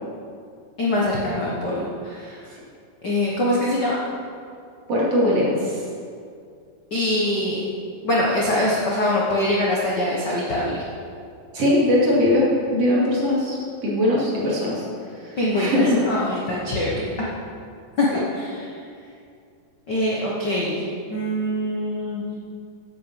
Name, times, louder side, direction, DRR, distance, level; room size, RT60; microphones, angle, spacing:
voice 1, 0.8-2.5 3.0-4.0 6.9-7.6 8.0-10.8 15.4-17.3 18.0-18.7 19.9-20.8 21.1-22.2, left 1 dB, 70° left, -5 dB, 1.0 m, -23 dB
voice 2, 4.9-5.8 11.5-12.5 12.7-13.6 13.8-14.8 15.6-16.0 18.1-18.2, left 1 dB, 45° right, -6 dB, 3.2 m, -20 dB
8.8 x 8.5 x 7.6 m, 2.4 s
omnidirectional pair, 4.2 m